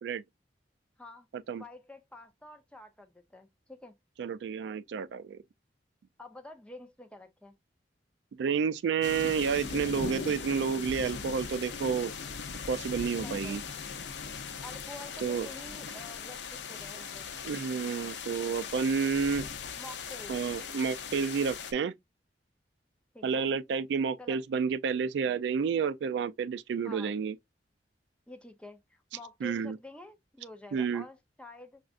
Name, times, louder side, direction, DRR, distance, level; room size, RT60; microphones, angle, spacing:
voice 1, 1.5-3.9 6.2-7.5 13.1-13.6 14.6-17.3 19.7-20.3 23.1-23.5 24.2-24.4 26.8-27.1 28.3-31.8, left 2 dB, 5° left, 0.6 m, -48 dB
voice 2, 4.2-5.4 8.4-12.1 12.7-13.6 15.2-15.5 17.4-19.4 20.3-21.9 23.2-27.3 29.4-29.8 30.7-31.0, right 6 dB, 70° right, 0.3 m, -30 dB
sound 1, 9.0-21.7, left 5 dB, 75° left, 0.6 m, -39 dB
6.1 x 2.4 x 2.4 m
head